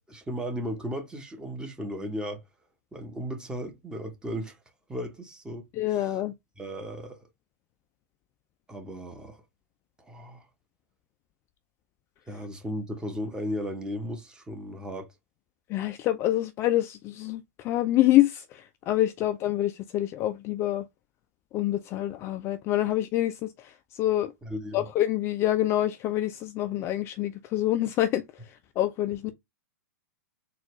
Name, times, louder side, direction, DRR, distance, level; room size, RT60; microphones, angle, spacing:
voice 1, 0.0-2.4 2.9-4.6 4.9-6.1 6.6-7.3 8.7-9.4 10.0-10.5 12.3-15.1 24.4-24.9, equal, 10° right, 0.9 m, -36 dB
voice 2, 5.8-6.3 15.7-20.8 21.5-24.3 24.7-28.2 28.8-29.3, left 14 dB, 25° left, 0.3 m, -26 dB
4.0 x 2.3 x 3.0 m
figure-of-eight pair, 110°, 10 cm